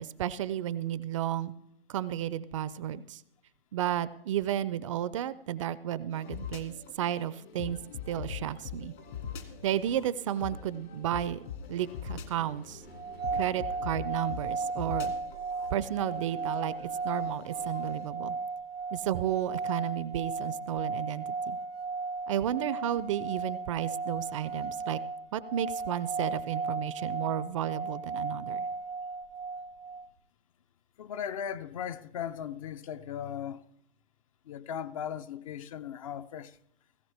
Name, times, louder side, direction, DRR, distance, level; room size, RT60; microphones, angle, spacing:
voice 1, 0.0-1.5 1.9-3.2 3.7-7.8 8.1-8.9 9.6-11.4 11.7-12.8 13.3-15.1 15.7-18.4 18.9-21.6 22.3-25.0 25.3-28.7, right 11 dB, 35° right, 0.4 m, -32 dB
sound 1, 6.1-18.1, left 7 dB, 55° left, 2.2 m, -43 dB
sound 2, 9.0-10.6 11.5-14.1 15.5-16.6, left 3 dB, 90° left, 7.2 m, -54 dB
sound 3, 12.9-30.1, right 4 dB, 80° right, 0.6 m, -35 dB
voice 2, 31.0-33.6 34.5-36.6, left 9 dB, 35° left, 0.5 m, -37 dB
17.0 x 16.0 x 3.3 m
figure-of-eight pair, 125°, 30 cm